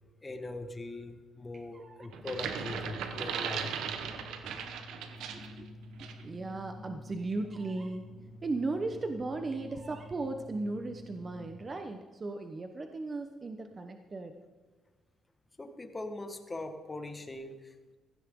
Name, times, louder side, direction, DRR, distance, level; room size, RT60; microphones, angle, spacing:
voice 1, 0.2-3.7 15.6-18.0, left 2 dB, 20° left, 7 dB, 1.6 m, -41 dB
voice 2, 1.7-2.1 4.9-5.7 6.0-8.0 8.4-14.3, right 3 dB, 35° right, 6 dB, 1.0 m, -37 dB
sound 1, 2.1-5.6 6.0-6.2, right 7 dB, 85° right, 1.2 m, -37 dB
sound 2, 2.2-11.5, left 1 dB, 40° left, 2.5 m, -49 dB
16.0 x 14.5 x 3.8 m, 1.3 s
cardioid pair, 90°, 0 cm